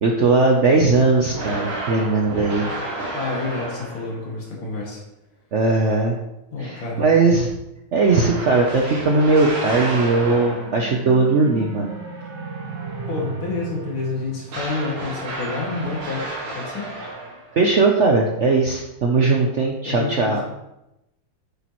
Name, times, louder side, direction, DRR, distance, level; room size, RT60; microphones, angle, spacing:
voice 1, 0.0-2.7 5.5-6.2 6.6-7.5 7.9-11.9 17.5-20.4, right 3 dB, 90° right, 1 dB, 0.6 m, -19 dB
sound 1, 1.3-4.3 8.0-10.9 14.5-17.6, right 2 dB, 70° right, 2.7 m, -31 dB
voice 2, 3.1-5.0 6.5-7.0 13.1-16.9 19.2-19.3 19.9-20.3, left 3 dB, 70° left, -3 dB, 3.1 m, -29 dB
sound 2, 10.1-15.5, right 5 dB, 40° right, 1.1 m, -35 dB
8.8 x 8.1 x 3.1 m, 0.89 s
omnidirectional pair, 2.4 m